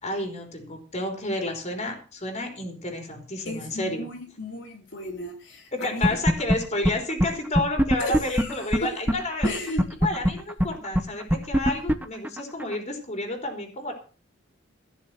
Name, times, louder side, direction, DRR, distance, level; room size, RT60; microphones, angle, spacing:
voice 1, 0.0-4.1 5.7-13.9, left 1 dB, 35° left, 4 dB, 3.7 m, -31 dB
voice 2, 3.4-6.1 8.0-8.6 9.4-9.8, left 2 dB, 70° left, 0 dB, 3.0 m, -35 dB
sound 1, 6.0-6.6 6.8-6.9 7.2-7.3 7.5-9.1 9.4-9.5 9.8-12.7, equal, 10° right, 0.9 m, -20 dB
15.5 x 6.6 x 7.5 m, 0.37 s
head